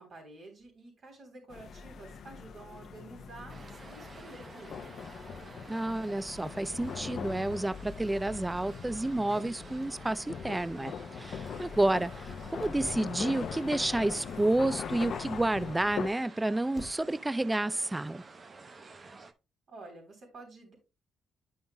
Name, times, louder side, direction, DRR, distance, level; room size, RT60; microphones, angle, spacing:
voice 1, 0.0-4.9 19.7-20.8, right 2 dB, 55° right, 3.5 m, -50 dB
sound 1, 0.6-17.4, left 2 dB, 25° left, 1.1 m, -58 dB
sound 2, 1.5-16.1, left 6 dB, 60° left, 0.6 m, -41 dB
- convention crowd noise, 3.5-19.3, right 3 dB, 35° right, 0.7 m, -51 dB
voice 2, 5.7-18.2, right 2 dB, 15° right, 0.3 m, -30 dB
10.5 x 5.5 x 2.2 m
cardioid pair, 90°, 0 cm